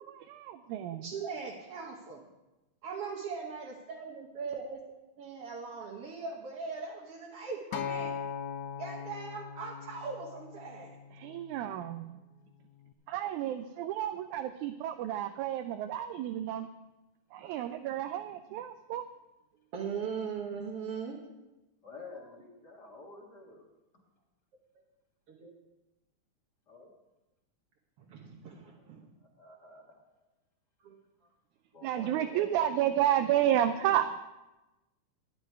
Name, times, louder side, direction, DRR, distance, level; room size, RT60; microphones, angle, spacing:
voice 1, 0.3-1.0 11.2-12.1 13.1-16.7 17.3-19.0 31.8-34.1, right 11 dB, 80° right, 8 dB, 1.9 m, -31 dB
voice 2, 1.0-2.3 2.8-4.8 5.2-8.1 8.8-10.9 19.7-21.2 25.3-25.5 28.1-29.1 30.8-30.9 32.0-32.5, right 5 dB, 60° right, -2 dB, 2.0 m, -40 dB
Acoustic guitar, 7.7-12.0 12.8-12.9, left 7 dB, 80° left, 2.2 m, -40 dB
voice 3, 17.4-17.7 21.8-23.7 23.9-24.0 26.7-26.9 29.4-30.0 31.7-32.6, left 3 dB, 40° left, -1 dB, 2.1 m, -50 dB
14.0 x 10.5 x 4.6 m, 1.0 s
omnidirectional pair, 3.5 m